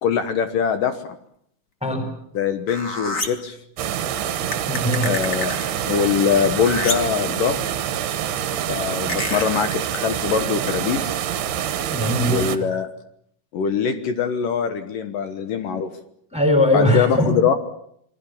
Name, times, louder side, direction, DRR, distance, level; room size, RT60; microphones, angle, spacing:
voice 1, 0.0-1.0 2.3-3.6 5.0-5.6 5.8-7.6 8.7-11.2 12.3-12.9 13.5-15.9 16.7-17.5, left 7 dB, 65° left, 9 dB, 2.4 m, -22 dB
sound 1, 2.7-3.5 4.5-5.8 6.6-7.2 9.1-9.4 11.5-11.6, left 2 dB, 40° left, 1.2 m, -28 dB
sound 2, 3.8-12.6, right 10 dB, 70° right, 3.1 m, -26 dB
voice 2, 4.7-5.1 11.9-12.6 16.3-17.3, left 1 dB, ahead, 4 dB, 5.2 m, -20 dB
27.5 x 21.0 x 7.2 m, 0.71 s
omnidirectional pair, 5.2 m